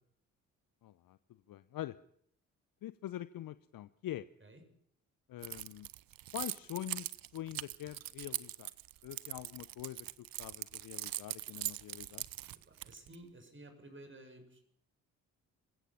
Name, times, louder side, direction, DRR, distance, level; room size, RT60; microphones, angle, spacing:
voice 1, 0.8-1.2 1.5-2.0 2.8-4.3 5.3-5.9 6.3-8.7 9.0-10.1 10.4-12.2, left 13 dB, 55° left, 16 dB, 0.9 m, -44 dB
Keys jangling, 5.4-13.2, right 14 dB, 55° right, 1.0 m, -41 dB
voice 2, 12.7-14.6, right 1 dB, 30° right, 7 dB, 7.3 m, -54 dB
27.5 x 16.0 x 5.8 m, 0.69 s
hypercardioid pair, 45°, 41 cm